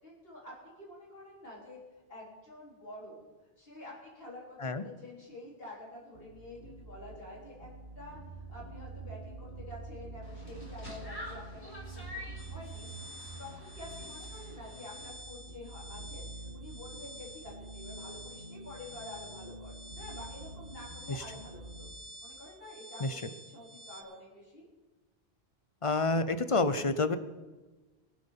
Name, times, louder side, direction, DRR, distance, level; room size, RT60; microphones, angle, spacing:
voice 1, 0.0-1.8 2.1-3.2 3.6-7.7 8.0-12.9 13.4-21.9 22.2-24.7, left 1 dB, 65° left, -5 dB, 4.0 m, -48 dB
sound 1, 6.1-21.9, right 2 dB, 60° right, 2.3 m, -47 dB
sound 2, 10.2-15.1, left 1 dB, 90° left, 5.0 m, -48 dB
sound 3, 12.4-24.0, equal, 10° left, 1.5 m, -50 dB
voice 2, 25.8-27.2, left 3 dB, 35° left, 12 dB, 0.7 m, -28 dB
22.5 x 7.9 x 5.7 m, 1.2 s
omnidirectional pair, 1.1 m